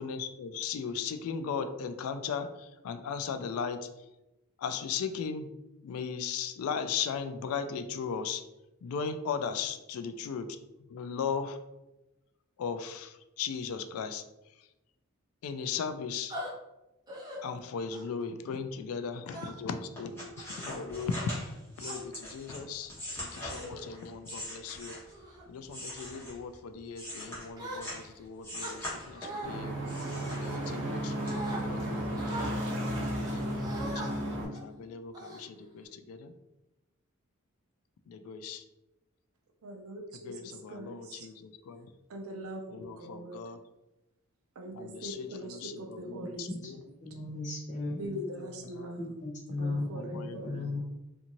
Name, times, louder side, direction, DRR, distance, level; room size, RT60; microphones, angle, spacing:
voice 1, 0.0-3.9 4.6-5.5 5.8-8.4 8.8-10.5 10.9-11.6 12.6-14.2 14.6-14.7 15.4-16.4 17.4-21.2 21.8-25.0 25.5-32.6 33.0-36.3 38.1-38.6 40.1-41.9 42.7-43.6 44.7-46.8 47.9-48.9 49.9-50.8, left 6 dB, 80° left, 9 dB, 0.3 m, -38 dB
sound 1, 16.3-16.5 17.1-17.4 17.9-18.2 19.3-19.8 20.4-20.7 21.4-22.0 22.8-23.0 23.5-23.9 24.4-24.6 25.1-25.4 26.0-26.2 27.5-28.2 28.6-29.5 30.2-30.9 31.2-31.6 32.1-32.5 33.6-34.1 34.5-34.7 35.1-35.8, right 1 dB, 20° right, 0.6 m, -42 dB
sound 2, 19.9-25.2 25.6-28.1 28.4-29.5 29.9-30.9 31.3-31.4, left 1 dB, 10° left, 1.2 m, -42 dB
sound 3, 29.4-34.5, right 1 dB, 60° right, 1.0 m, -33 dB
voice 2, 39.6-40.3 40.7-41.0 42.1-43.4 44.6-46.5 48.0-49.1 49.6-50.6, right 1 dB, 80° right, 3 dB, 0.5 m, -41 dB
voice 3, 47.0-48.0 49.0-50.8, left 2 dB, 35° left, -1 dB, 0.7 m, -36 dB
2.6 x 2.6 x 2.8 m, 0.96 s
head